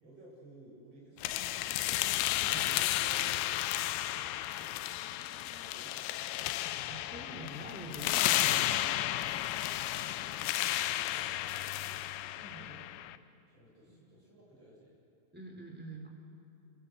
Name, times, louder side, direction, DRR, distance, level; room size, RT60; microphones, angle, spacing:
voice 1, 0.0-2.0 2.6-3.6 4.0-6.6 7.4-8.3 10.0-13.0 13.5-15.0, right 1 dB, 35° right, -3 dB, 7.9 m, -57 dB
sound 1, 1.2-13.2, left 14 dB, 80° left, 2.5 m, -33 dB
voice 2, 2.4-2.7 6.9-8.7 12.3-12.7 13.9-14.0 15.3-16.1, right 1 dB, 5° right, 1 dB, 2.9 m, -46 dB
27.0 x 24.0 x 7.9 m, 3.0 s
omnidirectional pair, 4.5 m